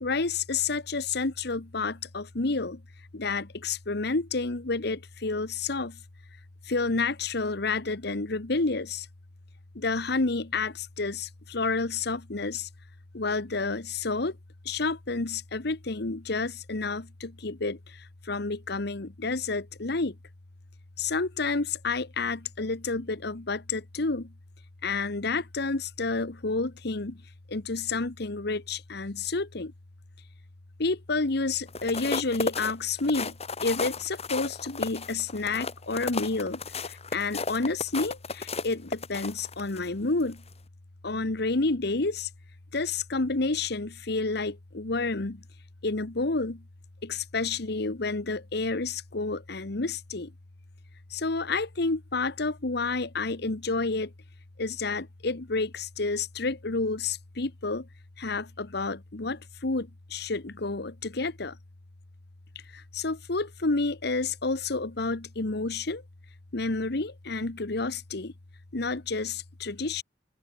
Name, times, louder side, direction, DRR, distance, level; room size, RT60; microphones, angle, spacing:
voice 1, 0.0-2.8 3.1-6.0 6.7-9.1 9.7-12.7 13.1-14.3 14.6-17.8 18.3-20.1 21.0-24.3 24.8-27.2 27.5-29.7 30.8-33.3 33.6-36.6 37.1-40.4 41.0-42.3 42.7-45.4 45.8-46.6 47.0-50.3 51.1-54.1 54.6-57.9 58.2-61.5 62.7-66.0 66.5-68.3 68.7-70.0, left 3 dB, 65° left, 1.3 m, -30 dB
sound 1, 31.7-39.9 40.3-40.5, left 4 dB, 35° left, 3.4 m, -33 dB
open air
head